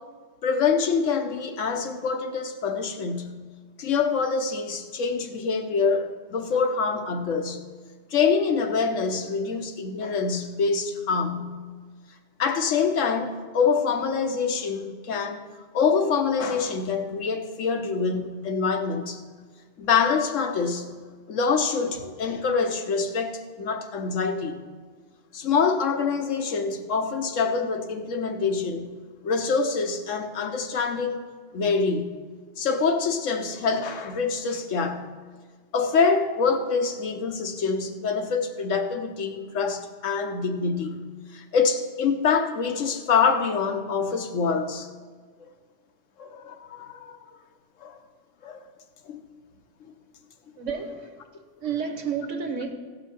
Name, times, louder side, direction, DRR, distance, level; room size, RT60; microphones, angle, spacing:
voice 1, 0.4-3.4 3.8-7.6 8.1-11.6 12.4-15.4 15.7-19.2 19.8-20.9 21.3-24.7 25.3-28.9 29.2-31.2 31.5-32.1 32.6-35.1 35.7-41.0 41.3-44.9 46.2-47.2 47.8-48.0 48.4-48.6 49.1-49.2, left 5 dB, 85° left, 1.2 m, -25 dB
voice 2, 50.6-51.1 51.6-52.7, right 6 dB, 80° right, 1.4 m, -30 dB
15.5 x 5.5 x 5.9 m
omnidirectional pair, 1.3 m